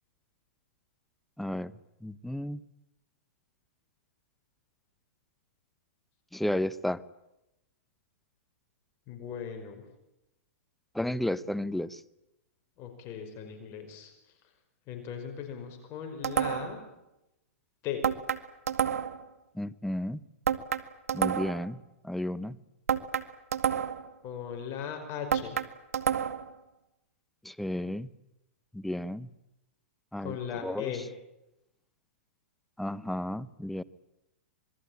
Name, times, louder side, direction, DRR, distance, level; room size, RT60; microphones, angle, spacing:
voice 1, 1.4-1.7 2.0-2.6 6.3-7.0 10.9-12.0 19.5-20.2 21.1-22.6 27.4-28.1 28.7-29.3 30.1-30.9 32.8-33.8, left 1 dB, ahead, 17 dB, 0.9 m, -33 dB
voice 2, 9.1-9.8 12.8-14.1 14.9-16.8 17.8-18.0 24.2-25.6 30.2-31.0, left 8 dB, 35° left, 5 dB, 5.5 m, -38 dB
sound 1, 16.2-16.8 18.0-19.3 20.5-21.7 22.9-24.1 25.3-26.5, right 8 dB, 85° right, 1.8 m, -29 dB
27.0 x 21.5 x 8.9 m, 0.90 s
hypercardioid pair, 135°, 8 cm